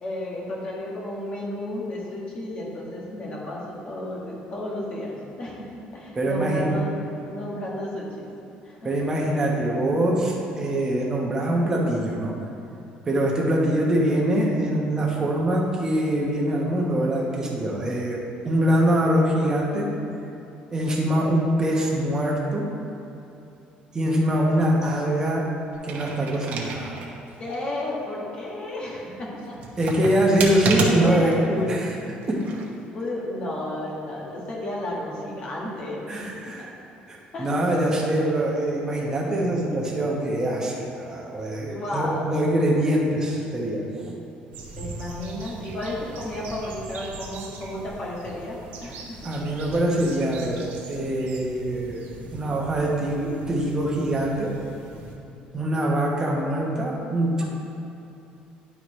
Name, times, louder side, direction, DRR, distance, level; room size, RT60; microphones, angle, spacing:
voice 1, 0.0-6.9 7.2-8.3 8.6-8.9 27.4-29.6 30.8-31.7 32.9-36.6 37.3-37.5 41.7-42.3 44.8-49.3, left 1 dB, 35° left, -4 dB, 1.7 m, -32 dB
voice 2, 6.1-6.8 8.8-12.3 13.0-19.9 20.7-22.7 23.9-25.5 25.8-26.9 29.8-31.9 32.3-32.4 36.1-36.7 37.1-44.2 49.2-52.1 52.3-54.6 55.5-57.4, right 1 dB, 20° right, -3 dB, 1.2 m, -24 dB
sound 1, 25.7-27.1 27.5-27.6 29.6-31.3 32.2-32.7, right 4 dB, 55° right, 1.0 m, -29 dB
sound 2, 44.5-55.2, right 3 dB, 80° right, 1.1 m, -41 dB
10.5 x 4.7 x 3.2 m, 2.8 s
cardioid pair, 140°, 3 cm